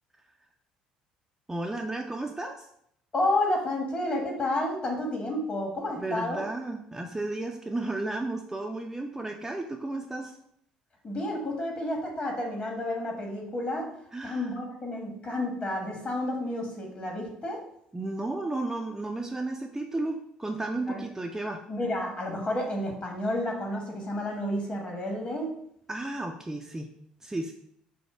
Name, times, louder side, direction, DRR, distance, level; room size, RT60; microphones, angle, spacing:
voice 1, 1.5-2.7 6.0-10.4 14.1-14.5 17.9-21.6 25.9-26.9 27.2-27.5, right 2 dB, 10° right, 2 dB, 0.4 m, -33 dB
voice 2, 3.1-6.4 11.0-13.9 14.2-17.6 20.9-21.0 21.7-25.5, left 1 dB, 35° left, 0 dB, 1.3 m, -30 dB
4.8 x 2.1 x 4.3 m, 0.72 s
figure-of-eight pair, 55°, 4 cm